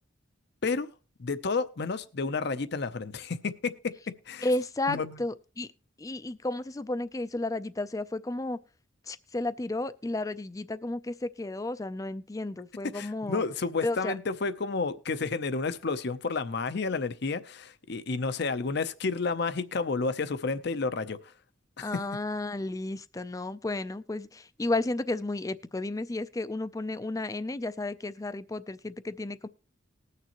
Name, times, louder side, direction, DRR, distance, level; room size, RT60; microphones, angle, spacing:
voice 1, 1.2-4.5 4.9-5.2 12.8-21.3 21.8-22.0, left 4 dB, 55° left, 0.6 m, -31 dB
voice 2, 4.4-5.7 6.0-8.6 9.1-13.4 13.8-14.2 21.8-29.5, left 2 dB, 15° left, 0.4 m, -33 dB
20.0 x 6.7 x 3.0 m
head